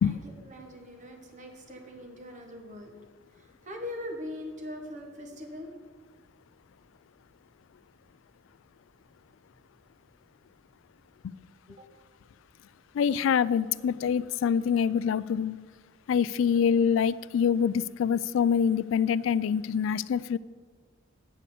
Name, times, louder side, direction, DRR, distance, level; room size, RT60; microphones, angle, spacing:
voice 1, 0.5-3.0 3.6-5.7 11.7-11.9 14.0-14.1, left 1 dB, 40° right, 3 dB, 1.2 m, -41 dB
voice 2, 12.9-15.6 16.1-20.4, left 7 dB, 75° left, 18 dB, 0.3 m, -25 dB
9.1 x 5.0 x 6.9 m, 1.5 s
head